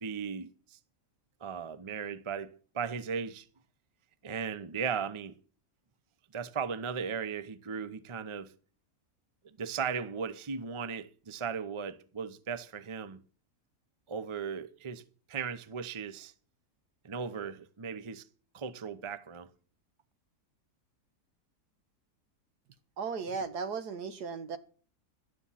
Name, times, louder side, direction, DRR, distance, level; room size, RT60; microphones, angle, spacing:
voice 1, 0.0-0.8 1.4-3.5 4.2-5.3 6.3-8.5 9.4-13.2 14.1-15.0 15.3-16.3 17.0-18.3 18.5-19.5, right 6 dB, 30° right, 0.6 m, -37 dB
voice 2, 23.0-24.6, right 5 dB, 75° right, 1.8 m, -36 dB
12.5 x 10.0 x 5.7 m
omnidirectional pair, 1.7 m